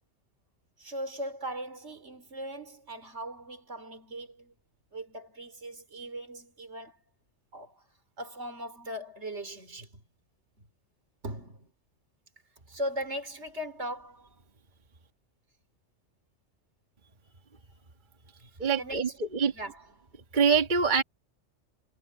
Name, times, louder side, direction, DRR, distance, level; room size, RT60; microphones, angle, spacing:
voice 1, 0.8-4.5 4.9-7.0 7.5-7.8 8.2-10.0 11.2-11.7 12.7-14.3 18.8-19.2 19.5-20.1, equal, 65° right, 3.7 m, -39 dB
voice 2, 18.6-19.5 20.3-21.0, right 6 dB, 40° right, 1.6 m, -25 dB
omnidirectional pair, 1.3 m